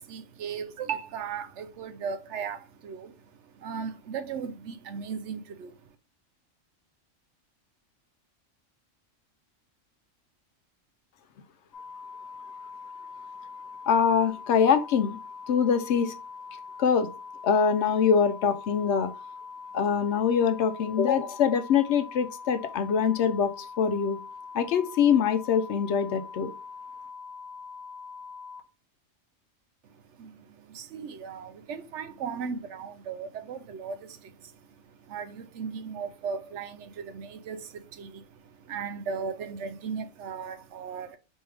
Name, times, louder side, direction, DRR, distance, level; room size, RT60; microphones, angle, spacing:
voice 1, 0.0-5.8 29.9-41.2, right 6 dB, 70° right, 0.8 m, -37 dB
sound 1, 11.7-28.6, left 5 dB, 20° left, 0.7 m, -43 dB
voice 2, 13.9-15.2 15.5-16.1 16.8-17.1 17.4-19.1 19.7-24.2 24.5-26.5, left 7 dB, 70° left, 0.8 m, -24 dB
4.2 x 3.4 x 3.3 m
omnidirectional pair, 1.3 m